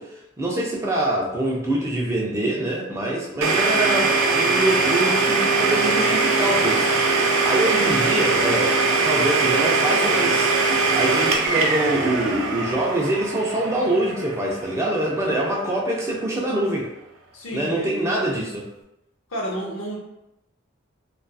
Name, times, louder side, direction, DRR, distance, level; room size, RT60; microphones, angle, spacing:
voice 1, 0.0-6.9 7.2-8.8 9.0-10.5 10.9-16.9 17.5-18.7, right 1 dB, 15° right, -2 dB, 0.4 m, -24 dB
Domestic sounds home sounds, 3.4-15.1, right 3 dB, 75° right, 0.4 m, -21 dB
voice 2, 17.3-18.3 19.3-20.0, equal, 75° left, -2 dB, 0.7 m, -31 dB
2.7 x 2.3 x 2.2 m, 0.88 s
head